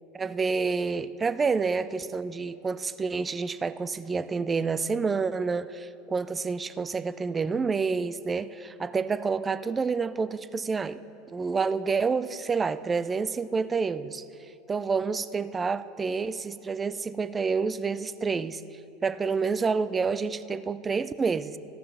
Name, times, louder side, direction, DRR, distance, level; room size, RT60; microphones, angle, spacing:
voice 1, 0.1-11.0 11.3-14.3 14.7-18.6 19.0-21.6, right 5 dB, 25° right, 15 dB, 0.3 m, -28 dB
14.0 x 5.5 x 5.5 m, 3.0 s
hypercardioid pair, 95°, 0 cm